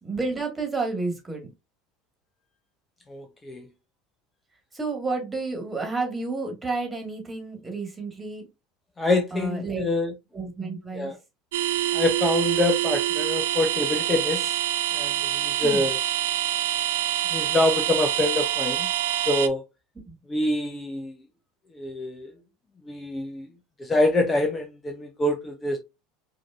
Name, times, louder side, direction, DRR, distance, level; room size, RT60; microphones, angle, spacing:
voice 1, 0.0-1.5 4.7-8.5 9.3-9.9 10.3-11.1 15.6-15.8 20.1-20.2, right 3 dB, 15° right, 1.8 m, -30 dB
voice 2, 3.1-3.7 9.0-10.1 10.9-11.1 11.9-14.6 14.9-16.0 17.3-18.9 19.3-19.6 20.3-21.2 21.7-22.3 22.9-23.5 23.8-25.8, left 2 dB, 20° left, 0.8 m, -25 dB
sound 1, 11.5-19.5, right 13 dB, 70° right, 0.4 m, -26 dB
4.9 x 2.9 x 2.5 m
hypercardioid pair, 75°, 0 cm